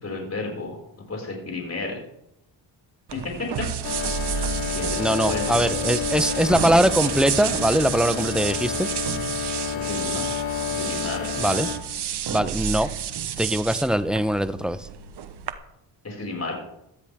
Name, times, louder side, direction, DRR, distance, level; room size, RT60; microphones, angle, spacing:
voice 1, 0.0-0.8 1.1-2.0 3.1-3.5 4.7-5.7 9.7-10.3 10.7-11.3 16.0-16.5, left 3 dB, 30° left, -1 dB, 5.8 m, -32 dB
sound 1, 3.1-15.5, right 8 dB, 55° right, 1.3 m, -30 dB
sound 2, 3.8-11.8, left 8 dB, 75° left, 3.6 m, -30 dB
voice 2, 5.0-8.9 11.4-11.7 12.3-12.9 13.4-14.9, equal, ahead, 12 dB, 0.8 m, -22 dB
17.5 x 13.0 x 3.7 m, 0.80 s
cardioid pair, 85°, 48 cm